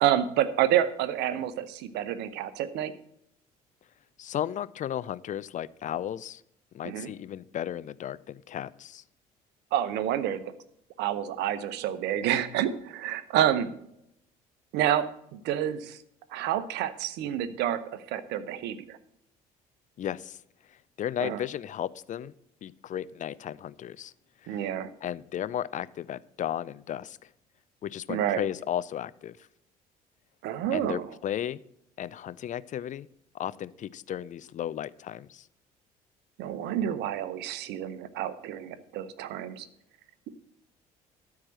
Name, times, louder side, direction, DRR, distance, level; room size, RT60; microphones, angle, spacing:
voice 1, 0.0-2.9 6.8-7.1 9.7-10.5 11.0-13.7 14.7-16.0 16.3-19.0 21.2-21.4 24.5-24.9 28.1-28.4 30.4-31.1 36.4-39.7, right 11 dB, 60° right, 13 dB, 1.0 m, -28 dB
voice 2, 4.2-6.4 6.7-9.0 20.0-20.4 20.7-22.3 22.6-24.1 24.5-24.6 25.0-27.3 27.8-29.4 30.7-31.6 32.0-33.1 33.3-35.5, left 10 dB, 40° left, 18 dB, 0.5 m, -34 dB
13.0 x 4.8 x 7.4 m, 0.76 s
hypercardioid pair, 55°, 19 cm